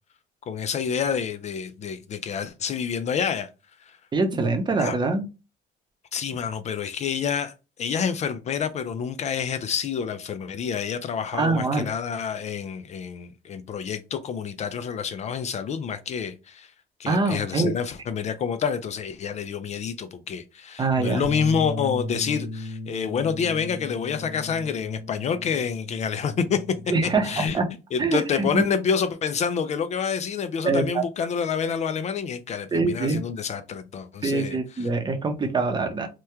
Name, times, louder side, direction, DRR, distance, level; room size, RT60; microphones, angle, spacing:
voice 1, 0.5-3.5 3.8-4.0 4.8-4.9 6.1-7.5 7.8-16.7 17.0-26.8 27.0-27.6 27.9-34.9, left 6 dB, 45° left, 0.4 m, -28 dB
voice 2, 4.1-5.3 11.4-11.8 17.1-17.7 20.8-21.2 26.9-27.7 28.0-28.6 30.6-31.0 32.7-33.2 34.2-36.1, right 3 dB, 25° right, 0.7 m, -24 dB
Bass guitar, 21.2-27.5, left 2 dB, 90° right, 1.1 m, -36 dB
2.9 x 2.2 x 3.3 m
cardioid pair, 110°, 17 cm